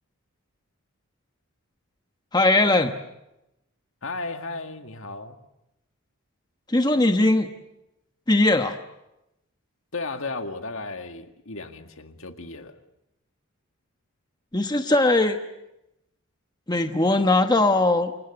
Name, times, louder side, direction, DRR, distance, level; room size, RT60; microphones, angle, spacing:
voice 1, 2.3-2.9 6.7-7.5 8.3-8.8 14.5-15.4 16.7-18.1, left 2 dB, 20° left, 1.1 m, -20 dB
voice 2, 4.0-5.4 9.9-12.8, left 3 dB, 65° left, 2.0 m, -34 dB
28.5 x 23.5 x 7.9 m
head